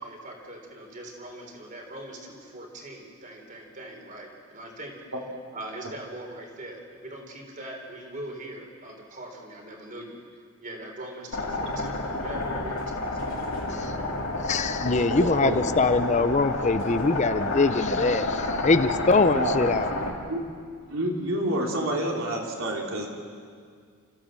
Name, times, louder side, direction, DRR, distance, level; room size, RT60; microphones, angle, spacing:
voice 1, 0.0-4.9 5.5-10.2 10.6-13.2 13.5-14.2, right 1 dB, 40° right, 2 dB, 3.7 m, -41 dB
sound 1, 11.3-20.1, left 2 dB, 70° left, 3.2 m, -30 dB
voice 2, 14.4-19.9, left 3 dB, 35° left, 11 dB, 0.6 m, -23 dB
voice 3, 15.2-15.8 19.3-19.8 20.3-20.4 20.9-23.1, right 1 dB, 70° right, -1 dB, 3.4 m, -28 dB
29.5 x 14.5 x 7.6 m, 2.1 s
head